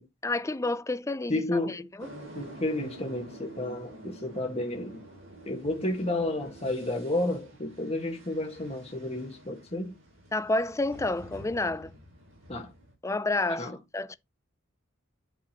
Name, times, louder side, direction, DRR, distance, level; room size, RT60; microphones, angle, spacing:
voice 1, 0.2-1.6 2.0-2.1 10.3-11.9 13.0-14.2, left 2 dB, 15° left, 0.4 m, -29 dB
voice 2, 1.3-1.9 2.3-5.0 5.4-10.0 12.5-12.7 13.6-13.8, left 1 dB, 30° left, 1.7 m, -31 dB
sound 1, 2.0-12.9, right 1 dB, 70° right, 6.1 m, -48 dB
10.5 x 5.4 x 3.0 m
head